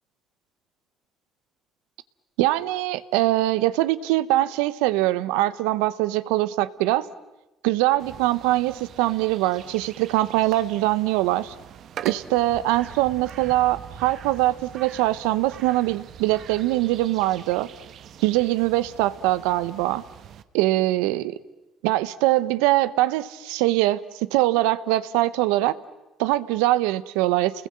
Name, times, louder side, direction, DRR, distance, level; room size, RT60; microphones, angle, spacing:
voice 1, 2.4-7.1 7.6-11.5 12.0-17.7 18.2-20.0 20.5-21.3 21.8-25.8 26.2-27.7, right 16 dB, 85° right, 15 dB, 0.8 m, -22 dB
sound 1, 8.0-20.4, right 9 dB, 60° right, 1.1 m, -43 dB
29.5 x 20.5 x 7.6 m, 1.0 s
supercardioid pair, 70°, 0 cm